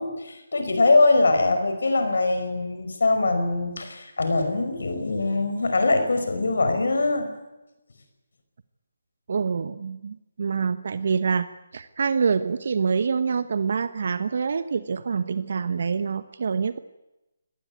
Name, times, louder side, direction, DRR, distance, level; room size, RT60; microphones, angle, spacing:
voice 1, 0.0-7.3, left 3 dB, 75° left, 7 dB, 4.9 m, -22 dB
voice 2, 9.3-11.5 11.7-16.8, right 5 dB, 60° right, 13 dB, 1.1 m, -26 dB
24.0 x 18.5 x 9.3 m, 0.96 s
figure-of-eight pair, 155°, 0 cm